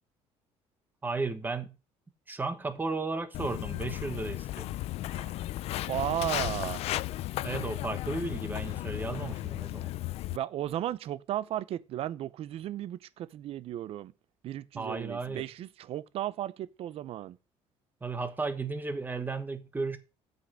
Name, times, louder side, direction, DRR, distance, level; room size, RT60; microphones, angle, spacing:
voice 1, 1.0-1.8 2.3-4.7 7.4-9.9 14.7-15.4 18.0-20.0, right 3 dB, 15° right, 1.2 m, -34 dB
Walk footsteps, 3.3-10.4, left 15 dB, 60° left, 0.4 m, -35 dB
voice 2, 5.9-6.8 10.3-14.1 14.4-17.4, right 12 dB, 55° right, 0.6 m, -35 dB
8.2 x 5.3 x 6.1 m
cardioid pair, 135°, 12 cm